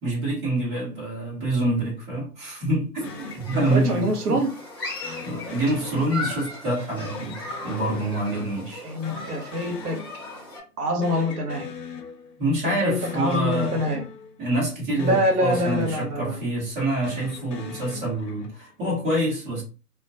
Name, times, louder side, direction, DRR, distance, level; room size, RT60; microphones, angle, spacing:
voice 1, 0.0-4.4 5.2-8.8 12.4-14.0 14.4-19.6, right 1 dB, 15° right, 0.9 m, -26 dB
sound 1, 3.0-4.5 5.0-6.6 7.0-8.8 9.0-10.6 10.8-12.5 12.9-14.7 15.0-16.6 17.0-18.7, left 4 dB, 85° left, 0.7 m, -41 dB
Human group actions, 3.0-10.6, left 1 dB, 15° left, 0.5 m, -37 dB
voice 2, 3.5-4.5 8.8-10.0 10.8-11.7 12.5-14.0 15.0-16.4, equal, 70° right, 0.8 m, -25 dB
2.2 x 2.2 x 2.6 m
figure-of-eight pair, 130°, 47 cm